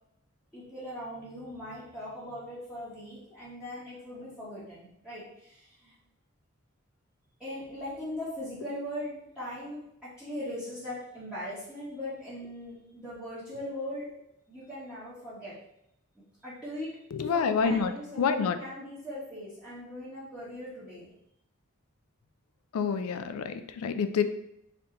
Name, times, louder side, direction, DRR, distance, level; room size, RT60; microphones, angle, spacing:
voice 1, 0.5-6.0 7.4-14.1 14.5-15.5 16.4-17.0 17.3-21.1, left 1 dB, 5° right, -12 dB, 1.1 m, -40 dB
voice 2, 17.1-17.9 18.2-18.6 22.7-24.2, left 6 dB, 90° left, 9 dB, 0.4 m, -27 dB
4.3 x 2.7 x 3.7 m, 0.78 s
head